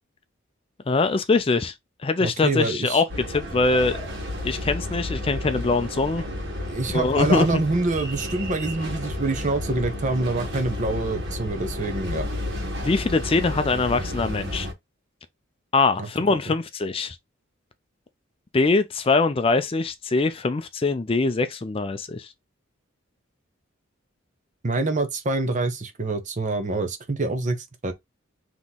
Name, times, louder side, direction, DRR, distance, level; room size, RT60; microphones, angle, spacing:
voice 1, 0.9-1.7 2.0-4.0 4.4-6.2 6.9-7.6 12.8-14.7 15.7-17.2 18.5-22.3, left 3 dB, 25° left, 0.4 m, -23 dB
voice 2, 2.2-3.0 6.7-12.3 16.3-16.5 24.6-27.9, right 2 dB, 35° right, 0.7 m, -26 dB
sound 1, 3.1-14.7, left 1 dB, 55° right, 1.6 m, -32 dB
3.7 x 3.0 x 4.0 m
head